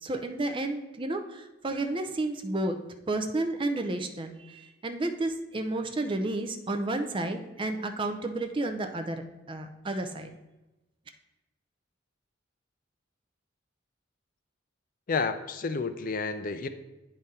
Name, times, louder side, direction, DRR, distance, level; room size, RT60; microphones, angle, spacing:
voice 1, 0.0-2.8 3.1-9.2 9.5-10.3, right 2 dB, 25° right, 6 dB, 0.5 m, -31 dB
voice 2, 15.1-16.7, left 4 dB, 45° left, 10 dB, 0.4 m, -30 dB
8.9 x 3.7 x 4.2 m, 1.0 s
head